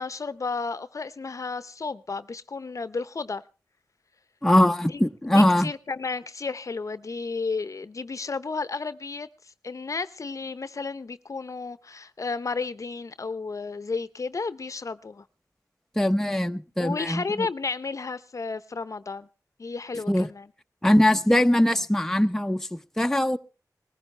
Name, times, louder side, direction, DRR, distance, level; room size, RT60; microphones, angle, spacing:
voice 1, 0.0-3.4 5.3-9.3 9.6-15.2 16.8-19.3 19.6-20.4, left 4 dB, 55° left, 0.7 m, -32 dB
voice 2, 4.4-5.7 16.0-17.5 20.1-20.3 20.8-23.4, left 1 dB, 5° left, 0.7 m, -21 dB
20.0 x 15.5 x 3.3 m
wide cardioid pair, 80°, 7 cm